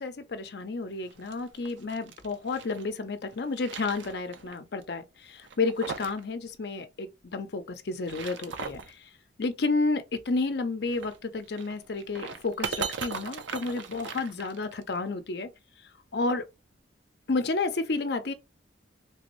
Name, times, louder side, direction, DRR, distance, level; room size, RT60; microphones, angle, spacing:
voice 1, 0.0-8.8 9.4-15.5 16.1-16.5 17.3-18.3, left 3 dB, 60° left, 0.6 m, -31 dB
sound 1, 1.0-2.8 3.3-4.5 4.8-4.9 5.4-6.2 6.5-6.6 7.8-8.9 10.9-14.9, right 5 dB, 75° right, 0.5 m, -38 dB
3.4 x 2.6 x 3.0 m
head